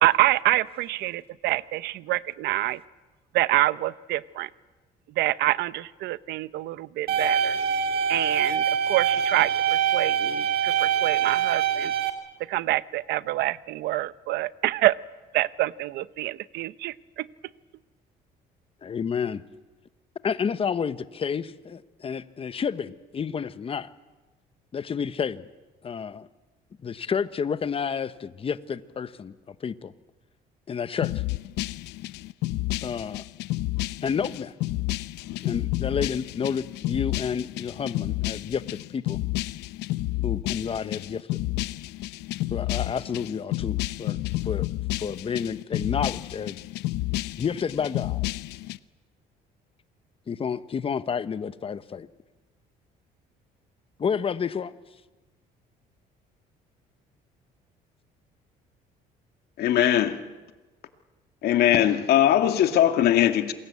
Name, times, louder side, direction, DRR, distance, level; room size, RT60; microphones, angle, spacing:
voice 1, 0.0-2.8 3.3-4.5 5.2-7.6 8.1-11.9 12.5-15.0 15.3-17.3, right 16 dB, 80° right, 0.8 m, -26 dB
sound 1, 7.1-12.1, right 8 dB, 65° right, 3.0 m, -24 dB
voice 2, 18.8-19.4 20.2-23.9 24.7-25.5 25.8-26.3 26.8-29.9 30.7-31.1 32.8-33.2 34.0-34.5 35.4-39.2 40.2-41.4 42.5-44.2 44.4-44.7 45.0-46.6 47.4-48.3 50.3-52.1 54.0-54.7, left 6 dB, 35° left, 1.1 m, -30 dB
sound 2, 31.0-48.8, left 17 dB, 90° left, 0.7 m, -30 dB
voice 3, 59.6-60.2 61.4-63.5, left 11 dB, 70° left, 2.1 m, -20 dB
27.5 x 21.5 x 8.4 m
cardioid pair, 110°, 17 cm